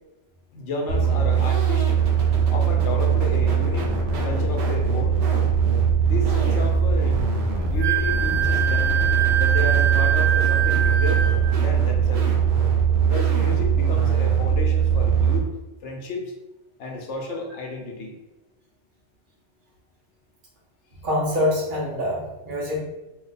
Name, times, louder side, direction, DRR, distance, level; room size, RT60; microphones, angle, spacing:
voice 1, 0.5-1.8 2.5-3.9 4.2-5.2 6.0-7.2 7.7-8.9 9.3-11.2 11.6-12.3 13.0-15.5 15.8-16.3 16.8-18.1, left 3 dB, 80° left, 1 dB, 1.0 m, -32 dB
sound 1, 0.9-15.4, right 7 dB, 85° right, 1.0 m, -21 dB
Wind instrument woodwind instrument, 7.8-11.5, right 9 dB, 70° right, 0.3 m, -24 dB
voice 2, 21.0-22.8, left 1 dB, 50° right, -5 dB, 1.0 m, -25 dB
2.7 x 2.2 x 4.0 m, 1.0 s
omnidirectional pair, 1.2 m